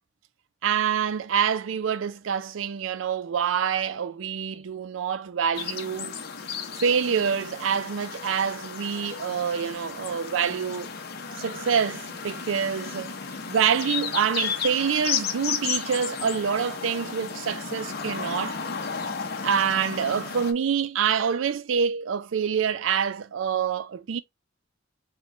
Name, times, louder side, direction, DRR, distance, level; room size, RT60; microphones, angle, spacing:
voice 1, 0.6-6.1 6.8-10.9 11.4-13.1 13.5-18.6 19.4-24.2, right 7 dB, 75° right, 0.4 m, -26 dB
sound 1, 5.5-20.5, left 6 dB, 50° left, 0.7 m, -34 dB
4.3 x 2.3 x 4.1 m
head